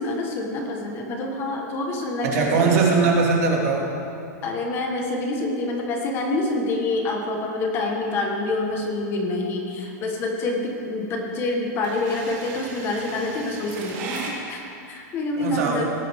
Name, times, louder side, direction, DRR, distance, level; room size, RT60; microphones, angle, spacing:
voice 1, 0.0-2.9 4.4-15.8, left 2 dB, 25° left, 1 dB, 1.2 m, -27 dB
voice 2, 2.2-3.9 15.4-15.8, right 4 dB, 55° right, 0 dB, 2.1 m, -20 dB
sound 1, 8.0-14.3, right 4 dB, 40° right, 2.2 m, -38 dB
18.0 x 8.5 x 3.5 m, 2.7 s
supercardioid pair, 165°, 10 cm